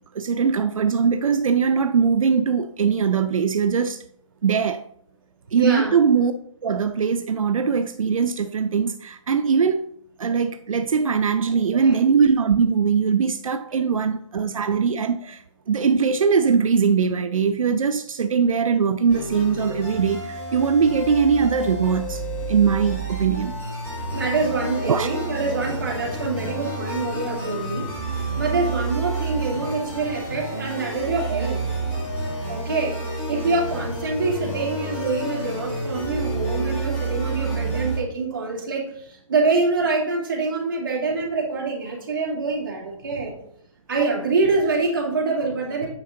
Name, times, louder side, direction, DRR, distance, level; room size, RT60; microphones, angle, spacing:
voice 1, 0.1-4.0 4.4-4.8 5.5-6.3 6.6-9.9 10.2-15.4 15.7-22.2 22.5-23.5 24.9-25.1, right 6 dB, 85° right, 0.5 m, -21 dB
voice 2, 5.5-5.9 11.7-12.0 13.7-13.8 24.1-27.9 28.4-31.6 32.5-33.0 33.3-43.3 43.9-45.9, right 3 dB, 40° right, 2.4 m, -25 dB
sound 1, 19.1-38.0, right 2 dB, 10° left, 1.2 m, -29 dB
8.9 x 5.2 x 3.8 m
hypercardioid pair, 175°, 17 cm